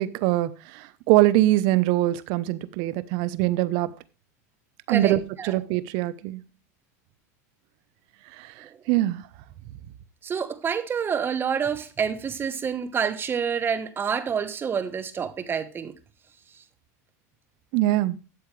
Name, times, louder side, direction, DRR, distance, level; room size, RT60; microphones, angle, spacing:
voice 1, 0.0-3.9 4.9-6.4 8.4-9.2 17.7-18.2, right 15 dB, 55° right, 0.9 m, -23 dB
voice 2, 4.9-5.5 10.2-15.9, right 7 dB, 25° right, 1.2 m, -28 dB
12.5 x 7.9 x 3.3 m
supercardioid pair, 115°, 9 cm